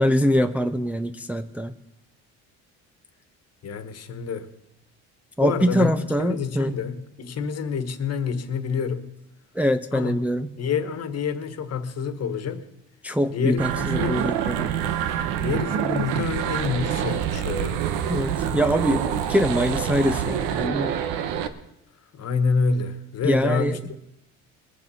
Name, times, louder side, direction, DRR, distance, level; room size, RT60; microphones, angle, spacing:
voice 1, 0.0-1.7 5.4-6.7 9.5-10.5 13.0-14.7 18.1-21.0 23.2-23.8, equal, 5° right, 0.5 m, -23 dB
voice 2, 3.6-4.5 5.4-9.1 9.9-10.2 10.6-12.7 13.3-14.3 15.4-17.8 22.1-23.8, left 5 dB, 50° left, 1.4 m, -27 dB
sound 1, 13.6-21.5, right 9 dB, 90° right, 1.0 m, -26 dB
21.0 x 7.2 x 5.6 m
cardioid pair, 95°, 33 cm